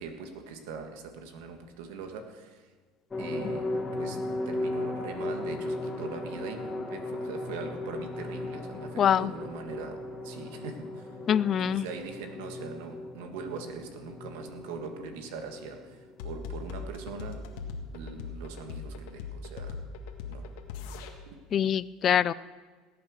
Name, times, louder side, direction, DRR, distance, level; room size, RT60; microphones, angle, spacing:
voice 1, 0.0-2.6 3.2-11.1 11.6-17.4 17.9-19.8 20.3-20.5 21.3-21.4, right 5 dB, 80° right, 6 dB, 1.8 m, -42 dB
sound 1, 3.1-17.2 17.5-17.6 18.0-18.1, left 2 dB, 20° left, 2.1 m, -37 dB
voice 2, 9.0-9.3 11.3-11.9 21.5-22.3, left 9 dB, 40° left, 19 dB, 0.4 m, -24 dB
sound 2, 16.2-21.1, left 5 dB, 80° left, 1.8 m, -39 dB
18.0 x 8.6 x 6.5 m, 1.4 s
supercardioid pair, 110°, 0 cm